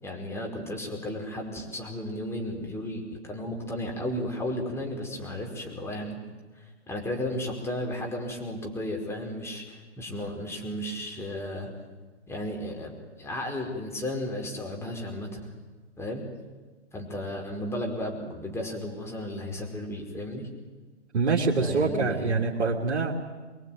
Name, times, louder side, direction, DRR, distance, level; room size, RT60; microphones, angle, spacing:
voice 1, 0.0-6.2 6.6-11.7 12.3-15.5 16.0-16.2 16.9-20.5 21.6-22.4, left 1 dB, 5° left, 0 dB, 5.1 m, -34 dB
voice 2, 21.1-23.1, right 4 dB, 70° right, -2 dB, 3.2 m, -25 dB
25.0 x 22.0 x 9.4 m, 1.3 s
hypercardioid pair, 125°, 35 cm